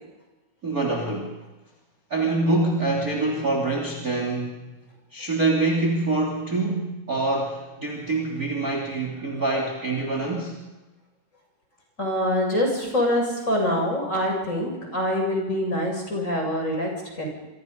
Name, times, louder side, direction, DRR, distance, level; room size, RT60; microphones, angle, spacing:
voice 1, 0.6-1.4 2.1-4.7 5.1-10.6, right 2 dB, 25° right, 0 dB, 3.2 m, -25 dB
voice 2, 12.0-16.9 17.2-17.3, left 1 dB, 20° left, 0 dB, 7.3 m, -25 dB
28.0 x 25.0 x 5.4 m, 1.1 s
omnidirectional pair, 4.4 m